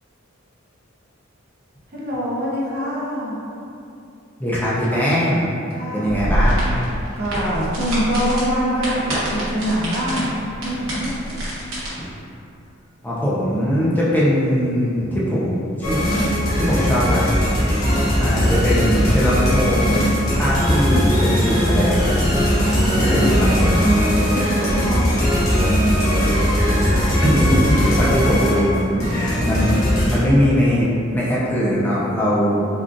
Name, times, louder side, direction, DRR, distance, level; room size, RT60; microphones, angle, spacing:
voice 1, 1.9-3.4 5.7-6.4 7.2-9.0 9.3-10.3 10.6-11.4 17.8-18.2 22.5-26.1, equal, 50° right, -6 dB, 0.7 m, -24 dB
voice 2, 4.4-5.5 5.9-6.7 12.0-12.1 13.0-16.0 16.6-17.3 18.2-22.1 22.9-23.3 27.2-29.7 30.1-32.6, equal, 10° left, -8 dB, 0.4 m, -20 dB
sound 1, 6.1-11.9, equal, 70° right, 1.0 m, -25 dB
sound 2, 15.8-30.2, equal, 85° left, 0.9 m, -19 dB
3.7 x 2.3 x 2.4 m, 2.6 s
head